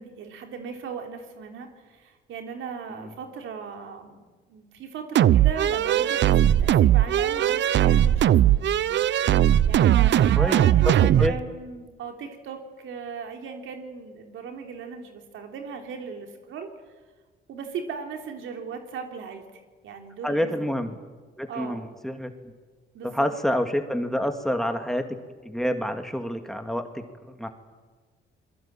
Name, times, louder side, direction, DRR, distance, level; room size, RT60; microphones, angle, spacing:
voice 1, 0.0-16.7 17.5-20.8 21.5-21.8 22.9-23.3, right 6 dB, 80° right, 4 dB, 3.5 m, -38 dB
sound 1, 5.2-11.3, right 11 dB, 65° right, 0.7 m, -19 dB
voice 2, 20.2-20.9 21.4-22.3 23.0-25.0 25.4-27.0 27.4-27.5, equal, ahead, 6 dB, 2.4 m, -27 dB
27.0 x 22.0 x 9.1 m, 1.4 s
cardioid pair, 90°, 20 cm